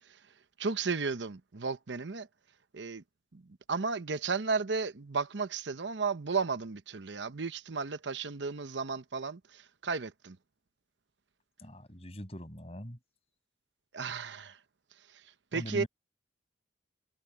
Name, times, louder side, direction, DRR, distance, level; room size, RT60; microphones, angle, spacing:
voice 1, 0.6-2.3 2.7-3.0 3.3-3.4 3.7-10.4 13.9-14.6 15.5-15.8, right 4 dB, 80° right, 0.9 m, -34 dB
voice 2, 11.6-13.0 15.5-15.9, equal, 35° left, 7.7 m, -41 dB
head